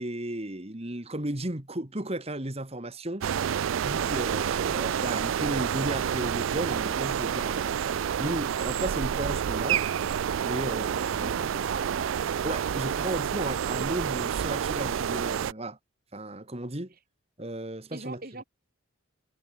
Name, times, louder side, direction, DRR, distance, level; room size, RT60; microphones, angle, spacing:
voice 1, 0.0-3.3 3.8-9.8 10.4-11.5 12.4-15.8 16.1-16.9 17.4-18.4, right 1 dB, 30° right, 2.1 m, -34 dB
sound 1, 3.2-15.5, right 8 dB, 75° right, 0.4 m, -29 dB
voice 2, 11.2-12.2 17.9-18.4, right 2 dB, 45° right, 6.9 m, -41 dB
head